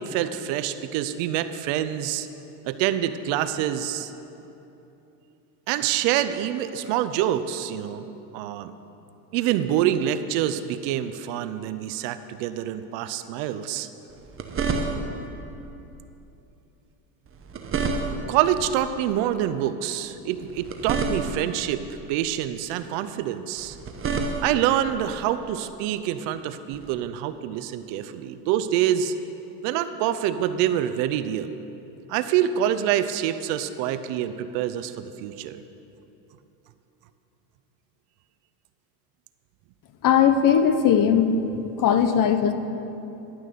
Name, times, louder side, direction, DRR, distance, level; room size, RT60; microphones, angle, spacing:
voice 1, 0.0-2.3 2.6-4.1 5.7-8.1 8.3-8.7 9.3-13.9 18.3-21.8 22.1-23.8 24.4-29.1 29.6-31.5 32.1-35.6, right 11 dB, 60° right, 12 dB, 0.7 m, -26 dB
sound 1, 14.1-15.3 17.3-18.4 20.4-21.6 23.6-24.7 26.7-26.9, right 4 dB, 25° right, 0.9 m, -29 dB
voice 2, 40.0-41.4 41.8-42.5, left 8 dB, 40° left, 9 dB, 0.7 m, -19 dB
11.0 x 6.2 x 6.7 m, 2.9 s
supercardioid pair, 100°, 49 cm